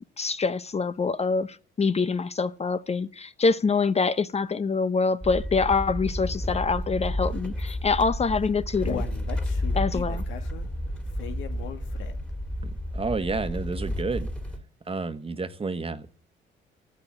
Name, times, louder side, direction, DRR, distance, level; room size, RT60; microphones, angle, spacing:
voice 1, 0.2-9.1 9.7-10.2, left 4 dB, 35° left, 0.7 m, -25 dB
sound 1, 5.2-14.6, left 1 dB, 5° left, 2.3 m, -31 dB
Human voice, 8.3-12.4 12.8-12.9 13.3-13.4, left 7 dB, 75° left, 2.1 m, -38 dB
voice 2, 12.6-14.3 14.9-16.1, right 4 dB, 30° right, 1.4 m, -30 dB
13.0 x 8.9 x 8.6 m
cardioid pair, 90°, 20 cm